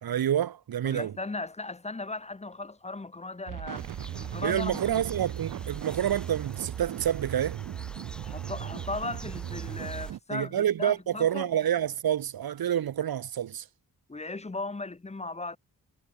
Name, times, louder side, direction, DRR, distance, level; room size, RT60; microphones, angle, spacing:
voice 1, 0.0-1.1 4.4-7.6 10.3-13.7, right 10 dB, 85° right, 2.1 m, -28 dB
voice 2, 0.8-3.9 4.2-4.8 8.2-11.5 14.1-15.6, left 3 dB, 20° left, 2.2 m, -37 dB
sound 1, 3.5-10.2, right 12 dB, 65° right, 0.7 m, -37 dB
sound 2, 3.8-10.1, equal, ahead, 2.5 m, -47 dB
wide cardioid pair, 165°, 35 cm